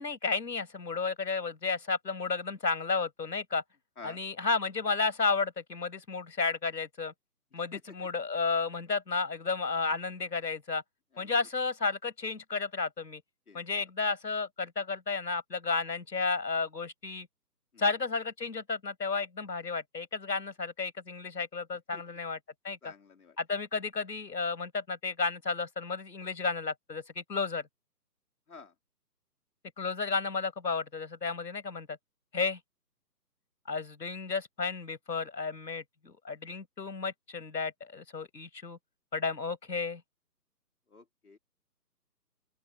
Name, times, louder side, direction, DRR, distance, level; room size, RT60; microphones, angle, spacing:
voice 1, 0.0-3.6 4.0-7.1 7.5-10.8 11.2-13.2 13.5-17.3 17.8-22.4 22.6-22.9 23.4-27.6 29.8-32.0 32.3-32.6 33.7-38.8 39.1-40.0, left 4 dB, 85° left, 6.7 m, -32 dB
voice 2, 22.8-23.4 28.5-28.7 40.9-41.4, left 4 dB, 60° left, 4.9 m, -49 dB
open air
hypercardioid pair, 180°, 49 cm